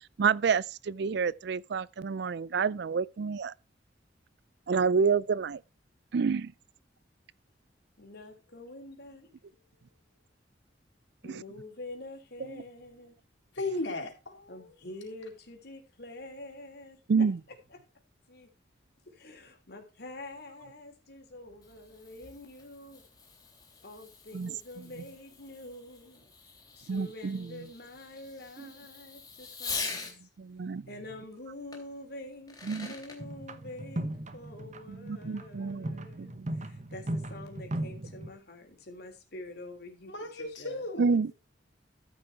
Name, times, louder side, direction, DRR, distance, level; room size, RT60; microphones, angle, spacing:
voice 1, 0.2-3.5 4.7-5.6 6.1-6.5 17.1-17.4 24.3-24.5 26.9-27.5 30.4-30.9 32.7-32.9 34.9-36.5 41.0-41.3, right 5 dB, 60° right, 0.4 m, -28 dB
voice 2, 8.0-9.3 9.7-9.8 11.2-13.2 14.5-17.3 17.7-17.8 18.3-18.5 19.1-23.0 23.8-26.3 26.8-30.3 30.9-40.8, left 2 dB, 60° left, 3.4 m, -46 dB
voice 3, 13.5-14.7 40.1-41.3, left 2 dB, 80° left, 3.9 m, -36 dB
Fireworks, 21.3-30.2 31.7-31.8 32.3-33.2, left 4 dB, 20° left, 3.4 m, -43 dB
sound 1, 33.2-38.3, right 1 dB, 40° right, 1.1 m, -38 dB
14.0 x 6.1 x 4.6 m
head